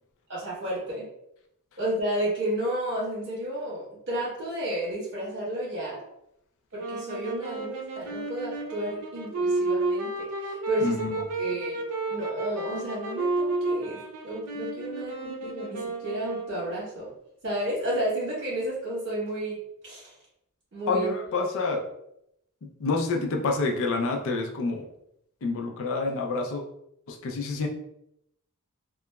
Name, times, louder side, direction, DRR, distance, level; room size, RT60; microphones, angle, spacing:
voice 1, 0.3-1.0 1.8-6.0 6.7-10.1 10.4-11.8 12.1-17.1 17.4-19.6 19.8-20.1 20.7-21.1, right 1 dB, 55° right, -6 dB, 1.4 m, -32 dB
sound 1, 6.7-16.7, right 3 dB, 80° right, 0.5 m, -31 dB
voice 2, 10.8-11.2 20.9-21.8 22.8-24.8 25.4-26.6 27.1-27.7, left 3 dB, 60° left, 3 dB, 0.4 m, -28 dB
2.9 x 2.3 x 2.2 m, 0.77 s
head